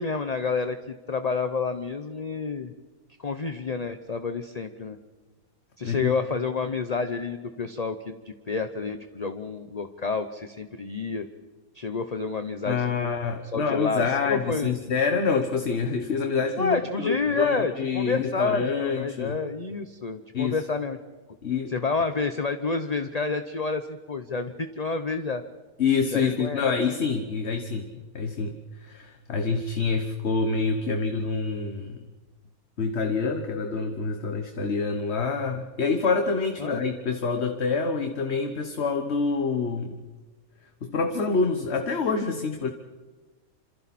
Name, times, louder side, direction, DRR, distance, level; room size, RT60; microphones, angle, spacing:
voice 1, 0.0-2.7 3.2-5.0 5.8-11.3 11.7-13.1 13.5-14.7 16.6-21.0 21.7-25.4 26.1-26.6 36.6-36.8, left 4 dB, 35° left, 8 dB, 0.8 m, -29 dB
voice 2, 12.7-19.4 20.3-20.6 21.4-21.7 25.8-32.1 32.8-40.0 40.8-42.7, left 4 dB, 50° left, 5 dB, 1.4 m, -27 dB
28.0 x 26.5 x 4.3 m, 1.3 s
omnidirectional pair, 1.5 m